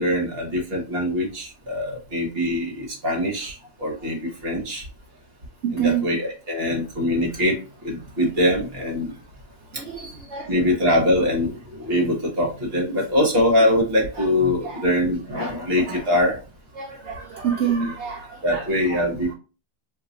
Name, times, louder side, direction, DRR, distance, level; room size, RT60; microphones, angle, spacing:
voice 1, 0.0-4.8 5.7-7.6 7.8-9.1 10.0-10.1 10.5-16.4 18.4-19.3, left 1 dB, 45° right, 0 dB, 1.1 m, -23 dB
voice 2, 5.6-6.0 9.7-10.7 14.2-14.3 14.6-14.8 15.9-16.3 16.7-19.1, right 8 dB, 70° right, 3 dB, 0.6 m, -28 dB
2.8 x 2.3 x 3.7 m, 0.34 s
omnidirectional pair, 1.7 m